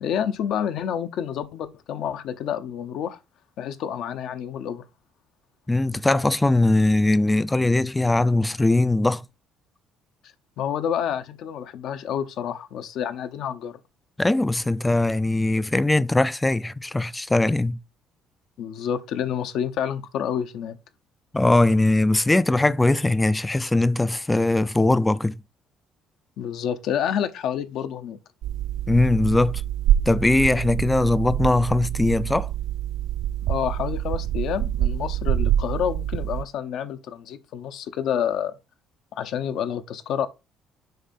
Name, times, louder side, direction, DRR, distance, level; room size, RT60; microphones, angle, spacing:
voice 1, 0.0-3.2 3.6-4.9 10.6-13.8 18.6-20.8 26.4-28.2 33.4-38.6 39.1-40.3, left 9 dB, 70° left, 0.8 m, -28 dB
voice 2, 5.7-9.3 14.2-17.8 21.3-25.4 28.9-29.6 30.1-32.5, left 2 dB, 10° left, 0.4 m, -20 dB
sound 1, 28.4-36.4, right 11 dB, 70° right, 0.3 m, -26 dB
6.7 x 4.6 x 4.2 m
cardioid pair, 120°, 0 cm